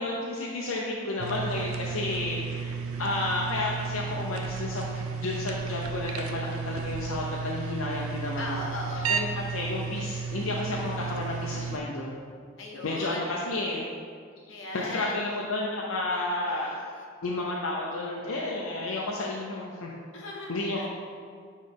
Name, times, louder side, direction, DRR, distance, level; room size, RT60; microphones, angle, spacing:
voice 1, 0.0-8.6 9.1-12.2 12.8-13.9 14.7-16.7 17.2-19.9 20.5-20.9, left 2 dB, 80° left, -3 dB, 0.6 m, -31 dB
sound 1, 1.2-11.8, right 5 dB, 90° right, 0.4 m, -33 dB
voice 2, 2.9-3.4 8.4-9.1 10.0-10.4 12.6-13.4 14.5-15.2 16.5-17.1 20.1-20.9, left 2 dB, 65° left, -1 dB, 1.0 m, -39 dB
9.3 x 3.2 x 3.5 m, 2.1 s
head